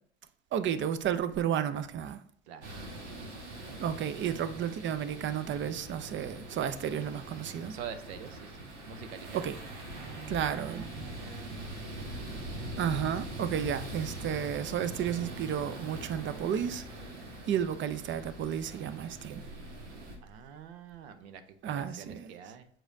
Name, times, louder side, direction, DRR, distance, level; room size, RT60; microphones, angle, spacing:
voice 1, 0.5-2.2 3.8-7.7 9.3-9.6 10.3-10.9 12.8-16.8 17.5-19.4 21.6-22.3, right 9 dB, 35° right, 0.6 m, -32 dB
sound 1, 2.6-20.2, right 1 dB, 85° right, 1.5 m, -43 dB
voice 2, 7.7-9.6 9.9-11.9 20.2-22.7, right 8 dB, 70° right, 0.8 m, -46 dB
7.5 x 4.9 x 2.7 m
hypercardioid pair, 80°, 34 cm